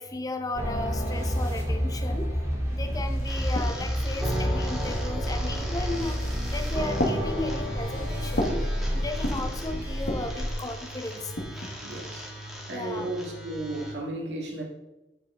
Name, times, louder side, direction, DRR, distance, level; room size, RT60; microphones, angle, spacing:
voice 1, 0.0-2.3 2.7-8.6 8.9-11.3 12.7-13.1, left 2 dB, 20° left, 6 dB, 0.7 m, -35 dB
sound 1, 0.5-10.5, equal, 15° right, 2.2 m, -29 dB
sound 2, 2.5-2.6 2.9-4.0 4.8-5.3 6.2-6.5 7.0-8.7 9.0-9.6 10.0-10.4 11.1-12.1, left 1 dB, 60° left, 1.5 m, -33 dB
sound 3, 3.2-13.9, equal, ahead, 1.5 m, -40 dB
voice 2, 11.8-14.6, right 2 dB, 80° right, 0 dB, 2.0 m, -35 dB
9.3 x 6.5 x 3.7 m, 1.0 s
head